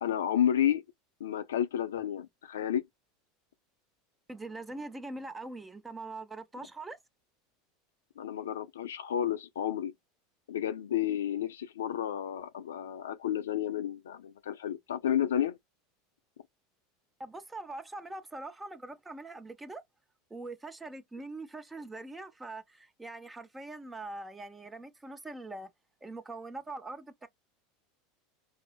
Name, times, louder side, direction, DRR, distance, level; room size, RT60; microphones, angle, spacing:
voice 1, 0.0-0.8 1.2-2.8 8.2-9.9 10.5-15.6, left 10 dB, 90° left, 0.5 m, -31 dB
voice 2, 4.3-7.0 17.2-19.8 20.3-25.7 26.0-27.3, right 2 dB, 10° right, 0.7 m, -42 dB
4.6 x 2.0 x 2.2 m
hypercardioid pair, 100°, 0 cm